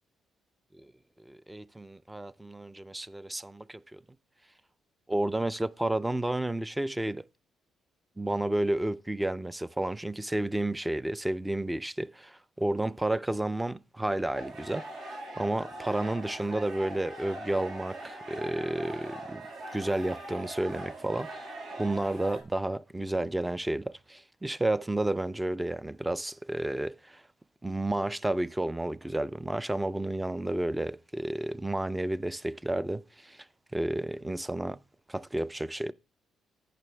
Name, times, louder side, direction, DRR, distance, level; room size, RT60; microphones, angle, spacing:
voice 1, 1.3-4.0 5.1-7.2 8.2-14.9 15.4-19.5 19.7-27.2 27.6-33.5 33.7-34.8 35.1-35.9, right 1 dB, 10° right, 0.4 m, -31 dB
sound 1, 14.3-22.4, right 2 dB, 65° right, 3.3 m, -41 dB
11.0 x 9.1 x 3.3 m
cardioid pair, 90°, 0 cm